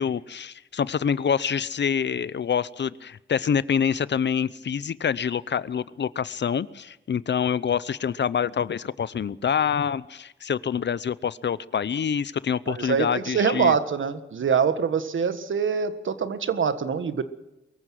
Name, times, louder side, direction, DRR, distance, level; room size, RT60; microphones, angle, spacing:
voice 1, 0.0-13.7, left 7 dB, 65° left, 19 dB, 0.7 m, -26 dB
voice 2, 12.7-17.2, right 6 dB, 85° right, 11 dB, 1.6 m, -24 dB
23.0 x 15.0 x 7.7 m, 0.95 s
wide cardioid pair, 100°, 20 cm